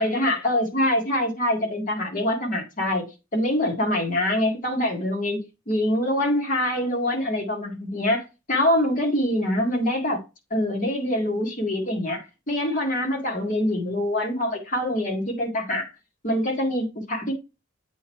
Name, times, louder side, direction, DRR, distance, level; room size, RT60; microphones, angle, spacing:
voice 1, 0.0-3.1 3.3-8.2 8.5-10.2 10.5-15.9 16.2-17.3, left 1 dB, 40° left, 1.9 m, -24 dB
8.3 x 3.1 x 4.4 m
head